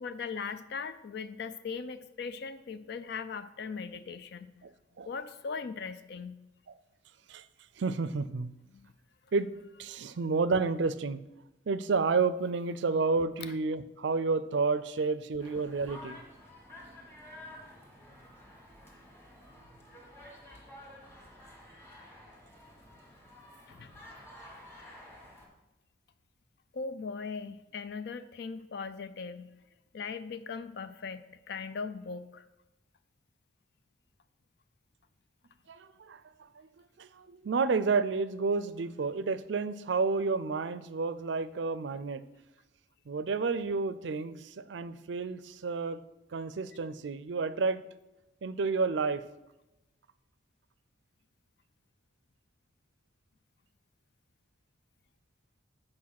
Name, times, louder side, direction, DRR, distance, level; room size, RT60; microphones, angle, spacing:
voice 1, 0.0-4.5 5.1-6.4 8.7-8.9 10.0-10.1 13.4-13.6 23.7-23.9 26.7-29.5 29.9-32.4, left 5 dB, 60° left, 12 dB, 0.4 m, -39 dB
voice 2, 7.8-8.5 9.3-9.5 9.8-11.2 11.7-16.2 35.7-36.2 36.6-36.7 37.0-42.2 43.1-46.0 46.3-47.8 48.4-49.2, right 4 dB, 70° right, 14 dB, 0.4 m, -30 dB
sound 1, 15.4-25.5, left 1 dB, 15° left, 1.7 m, -51 dB
8.6 x 4.9 x 5.8 m, 0.96 s
head